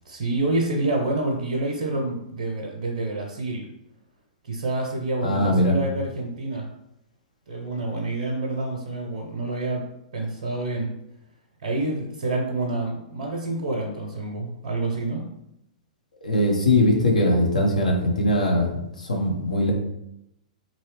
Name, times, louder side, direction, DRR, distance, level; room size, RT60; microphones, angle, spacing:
voice 1, 0.0-3.6 4.5-6.7 7.5-9.8 10.1-10.9 11.6-15.3, right 2 dB, 55° right, 0 dB, 0.6 m, -27 dB
voice 2, 5.2-5.8 16.2-19.7, left 1 dB, 75° left, 0 dB, 0.8 m, -21 dB
2.9 x 2.7 x 3.1 m, 0.81 s
figure-of-eight pair, 105°, 4 cm